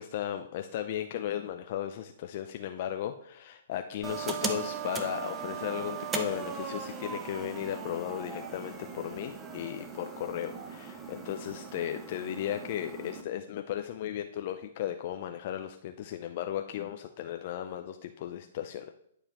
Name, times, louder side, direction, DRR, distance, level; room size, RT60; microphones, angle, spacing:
voice 1, 0.0-18.9, left 11 dB, 50° left, 6 dB, 0.5 m, -36 dB
sound 1, 4.0-13.2, right 5 dB, 15° right, 0.8 m, -38 dB
11.0 x 4.8 x 3.0 m, 0.72 s
hypercardioid pair, 135°, 0 cm